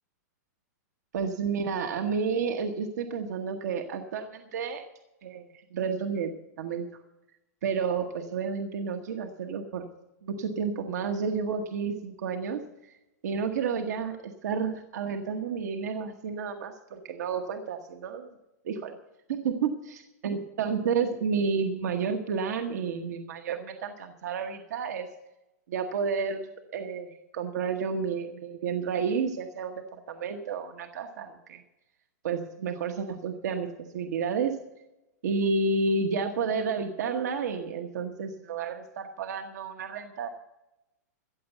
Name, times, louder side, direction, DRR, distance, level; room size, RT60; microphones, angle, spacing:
voice 1, 1.1-4.8 5.2-5.5 5.7-6.3 6.6-6.9 7.6-9.9 10.2-12.9 13.2-18.3 18.6-19.0 19.3-25.1 25.7-31.6 32.2-34.6 35.2-40.3, right 5 dB, 70° right, 5 dB, 1.1 m, -31 dB
14.5 x 8.0 x 8.0 m, 0.97 s
hypercardioid pair, 150°, 9 cm